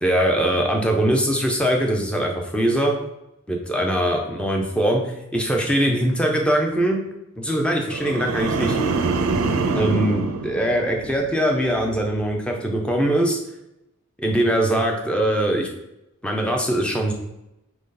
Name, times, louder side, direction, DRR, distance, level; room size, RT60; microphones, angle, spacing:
voice 1, 0.0-2.9 3.5-7.0 7.4-8.8 9.7-13.4 14.2-15.7 16.2-17.1, right 1 dB, 5° left, 1 dB, 0.6 m, -22 dB
sound 1, 7.9-11.3 11.7-12.1, right 3 dB, 70° right, 0.4 m, -25 dB
4.0 x 3.3 x 3.8 m, 0.89 s
head